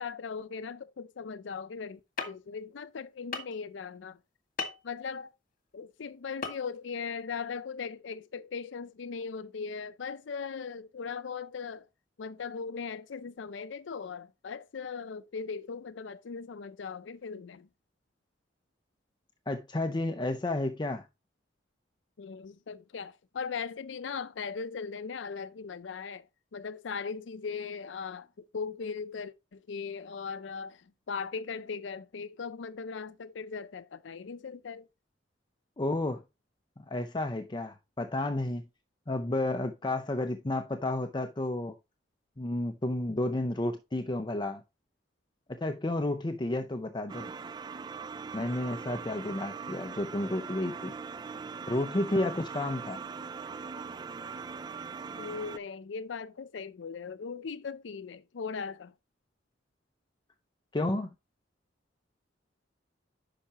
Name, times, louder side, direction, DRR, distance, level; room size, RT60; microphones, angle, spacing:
voice 1, 0.0-2.0 2.3-4.2 4.8-5.3 5.7-11.9 12.2-17.7 22.2-26.3 26.5-34.9 55.2-58.9, left 5 dB, 80° left, 0.5 m, -39 dB
sound 1, 2.2-2.3 3.3-3.6 4.6-4.8 6.4-6.6 6.9-7.0, left 4 dB, 50° left, 1.8 m, -34 dB
voice 2, 19.5-21.0 35.8-36.2 36.9-38.6 39.1-41.8 42.4-44.6 45.5-47.3 48.3-50.9 51.7-53.0 60.7-61.1, left 1 dB, 25° left, 0.6 m, -31 dB
sound 2, 47.1-55.6, right 5 dB, 25° right, 0.4 m, -41 dB
10.0 x 5.7 x 2.9 m
head